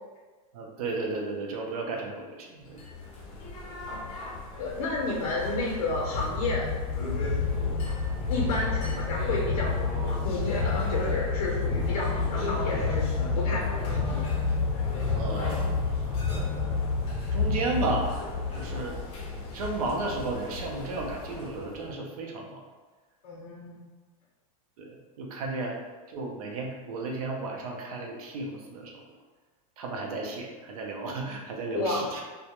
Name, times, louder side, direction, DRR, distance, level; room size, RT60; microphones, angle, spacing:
voice 1, 0.5-2.8 15.1-16.8 17.3-18.2 18.5-19.0 19.3-22.6 24.8-25.8 26.1-29.0 29.8-32.2, right 3 dB, 85° right, 1 dB, 0.6 m, -34 dB
sound 1, 2.7-21.9, left 4 dB, 35° left, 0.5 m, -30 dB
voice 2, 4.6-6.7 8.3-13.1 13.4-14.3 18.9-19.0 23.2-23.8 31.7-32.1, left 2 dB, 85° left, -2 dB, 0.5 m, -31 dB
2.2 x 2.0 x 2.8 m, 1.3 s
supercardioid pair, 155°, 18 cm